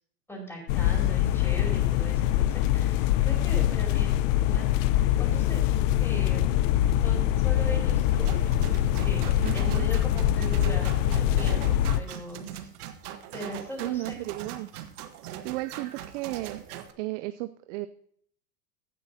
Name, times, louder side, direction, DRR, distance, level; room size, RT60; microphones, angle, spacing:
voice 1, 0.3-6.6 7.0-12.7 13.3-14.2, equal, 5° left, -2 dB, 5.3 m, -40 dB
sound 1, 0.7-12.0, left 12 dB, 55° left, 0.6 m, -24 dB
sound 2, 8.2-16.9, right 11 dB, 70° right, 1.4 m, -41 dB
voice 2, 9.4-9.9 13.8-14.7 15.4-16.7 17.0-17.9, right 18 dB, 50° right, 12 dB, 0.6 m, -34 dB
16.0 x 10.0 x 2.8 m, 0.65 s
hypercardioid pair, 110°, 47 cm